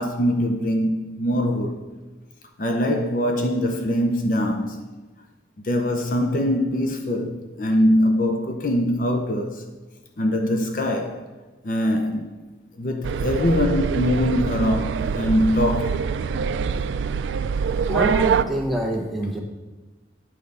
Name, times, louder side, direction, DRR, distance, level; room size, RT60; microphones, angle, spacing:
voice 1, 0.0-1.8 2.6-4.8 5.6-9.6 10.2-11.2 11.6-12.3 12.8-16.0, left 1 dB, 45° left, 0.7 m, -22 dB
sound 1, 13.0-18.4, right 6 dB, 85° right, 0.3 m, -24 dB
voice 2, 17.9-19.4, right 1 dB, ahead, 0.9 m, -25 dB
8.7 x 4.6 x 5.4 m
head